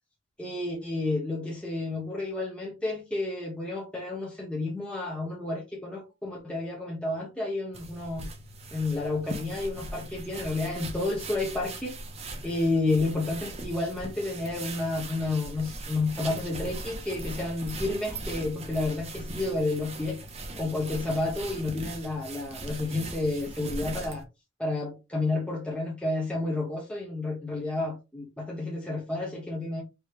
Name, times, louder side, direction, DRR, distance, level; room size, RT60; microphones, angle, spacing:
voice 1, 0.4-8.3 8.7-11.9 12.4-20.2 20.6-24.2 24.6-29.8, left 2 dB, 5° left, 1.0 m, -30 dB
sound 1, 7.7-24.2, right 2 dB, 30° right, 0.8 m, -39 dB
4.6 x 3.2 x 3.3 m
head